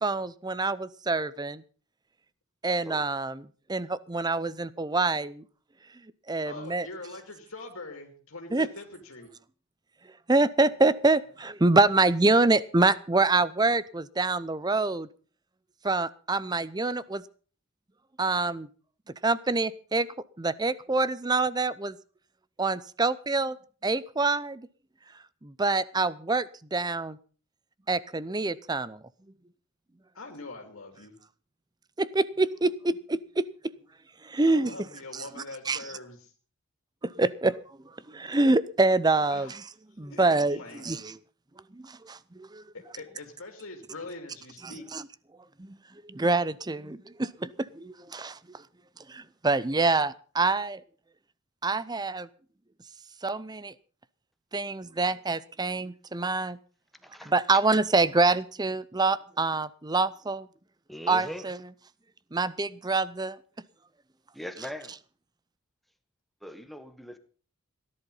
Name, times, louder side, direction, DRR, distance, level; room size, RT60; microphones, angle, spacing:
voice 1, 0.0-1.6 2.6-3.4 3.7-5.4 6.3-6.9 8.5-8.7 10.3-15.1 15.8-17.2 18.2-18.7 19.2-20.1 20.4-22.0 22.6-23.6 23.8-24.7 25.4-27.2 27.9-29.0 32.0-33.5 34.2-34.7 35.1-35.2 35.7-35.8 37.0-37.5 38.1-39.5 40.0-40.6 40.8-41.1 41.7-42.6 44.9-45.0 45.6-45.7 46.1-48.4 49.1-50.8 51.6-52.3 53.2-53.7 54.5-56.6 57.3-60.5 61.1-61.6 62.3-63.4, right 3 dB, 20° right, 18 dB, 0.6 m, -26 dB
voice 2, 6.4-9.3 30.1-31.2 34.5-36.3 39.3-39.6 40.1-41.0 42.7-44.9, left 2 dB, 70° left, 2 dB, 2.8 m, -43 dB
voice 3, 57.0-57.3 60.9-61.4 64.3-64.9 66.4-67.2, equal, ahead, 8 dB, 1.4 m, -40 dB
17.0 x 11.0 x 5.6 m, 0.41 s
head